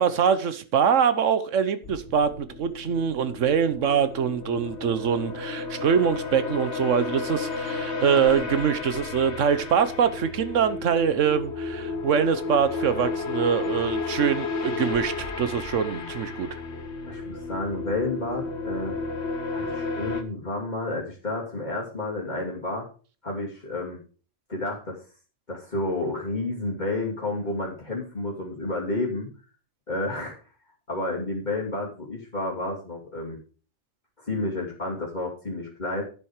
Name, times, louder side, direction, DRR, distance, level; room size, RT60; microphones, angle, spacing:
voice 1, 0.0-16.5, right 7 dB, 85° right, 1.3 m, -24 dB
sound 1, 1.8-20.2, left 4 dB, 65° left, 1.4 m, -32 dB
voice 2, 17.1-19.0 19.5-22.8 23.2-24.0 24.5-25.0 25.5-29.3 29.9-30.3 30.9-33.4 34.2-36.0, left 2 dB, 35° left, 2.8 m, -30 dB
11.5 x 6.9 x 4.8 m
omnidirectional pair, 1.3 m